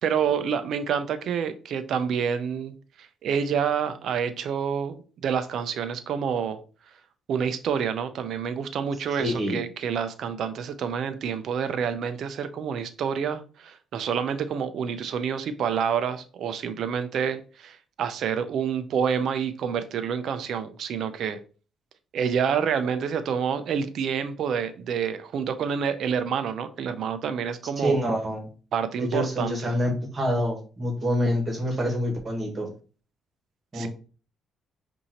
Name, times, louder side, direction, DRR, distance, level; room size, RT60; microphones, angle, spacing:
voice 1, 0.0-6.6 7.3-21.4 22.1-28.0 28.7-29.8 33.7-33.9, right 7 dB, 70° right, 0.5 m, -28 dB
voice 2, 9.2-9.6 27.8-28.5 29.0-32.7 33.7-33.9, equal, 35° right, 1.5 m, -26 dB
5.5 x 2.7 x 3.0 m
cardioid pair, 90°, 0 cm